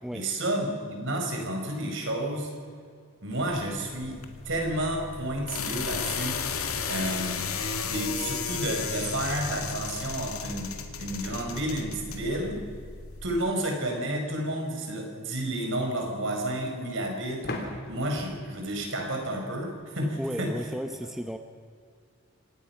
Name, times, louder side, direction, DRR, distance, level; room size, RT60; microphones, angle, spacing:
voice 1, 0.1-2.5 3.2-6.4 6.9-7.5 7.8-10.7 11.0-12.6 13.2-20.5, right 1 dB, 60° right, 2 dB, 4.9 m, -31 dB
sound 1, 3.3-13.4, left 6 dB, 80° left, 2.1 m, -34 dB
sound 2, 17.4-20.1, left 1 dB, 45° left, 3.2 m, -40 dB
voice 2, 20.2-21.4, equal, ahead, 6 dB, 0.7 m, -34 dB
25.5 x 18.5 x 5.8 m, 2.2 s
head